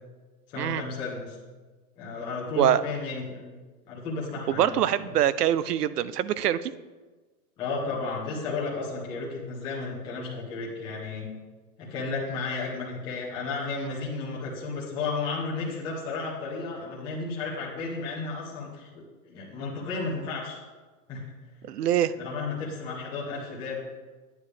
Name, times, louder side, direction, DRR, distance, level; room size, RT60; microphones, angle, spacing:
voice 1, 0.5-1.4 2.0-3.5 3.8-4.8 7.6-11.3 11.8-18.9 19.2-20.6 21.1-21.3 22.2-23.8, left 4 dB, 10° left, -6 dB, 0.9 m, -33 dB
voice 2, 4.5-6.7 21.6-22.1, right 11 dB, 80° right, 16 dB, 0.7 m, -24 dB
9.6 x 8.9 x 3.3 m, 1.3 s
hypercardioid pair, 170°, 46 cm